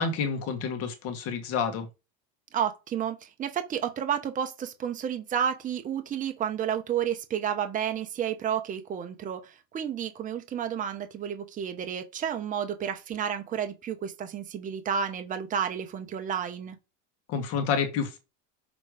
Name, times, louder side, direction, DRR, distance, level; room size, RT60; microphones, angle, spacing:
voice 1, 0.0-1.9 17.3-18.2, left 6 dB, 45° left, 1.7 m, -29 dB
voice 2, 2.5-16.8, right 8 dB, 25° right, 0.9 m, -31 dB
6.3 x 3.3 x 4.9 m
supercardioid pair, 150°, 35 cm